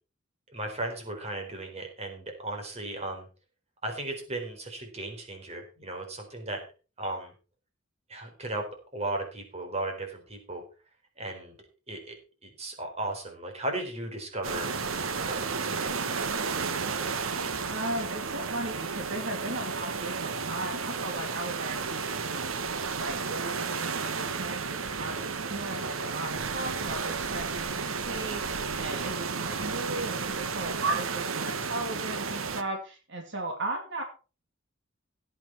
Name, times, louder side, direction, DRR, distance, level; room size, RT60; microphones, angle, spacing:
voice 1, 0.5-3.3 3.8-6.6 7.0-7.3 8.1-10.6 11.2-11.6 11.9-12.2 12.4-14.7 15.2-16.2, right 2 dB, 30° right, 3 dB, 4.3 m, -36 dB
sound 1, 14.4-32.6, right 5 dB, 85° right, 1.2 m, -32 dB
voice 2, 17.7-22.6 22.9-34.0, right 2 dB, 65° right, 2 dB, 2.6 m, -36 dB
16.5 x 8.6 x 4.6 m, 0.35 s
head